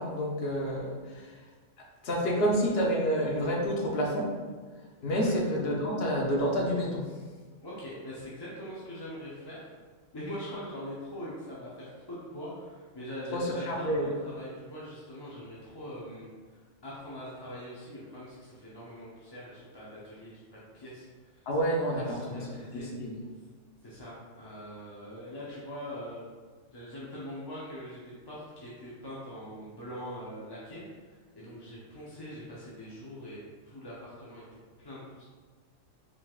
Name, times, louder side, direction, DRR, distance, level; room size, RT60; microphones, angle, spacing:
voice 1, 0.0-1.3 2.0-4.3 5.0-7.1 13.3-14.1 21.5-22.5 22.7-23.2, equal, 55° left, -2 dB, 1.0 m, -29 dB
voice 2, 7.6-9.7 10.1-20.4 20.7-21.5 21.9-22.9 23.8-26.2 26.7-33.4 33.6-35.2, equal, 25° left, -7 dB, 0.7 m, -43 dB
5.0 x 3.9 x 2.4 m, 1.5 s
omnidirectional pair, 1.3 m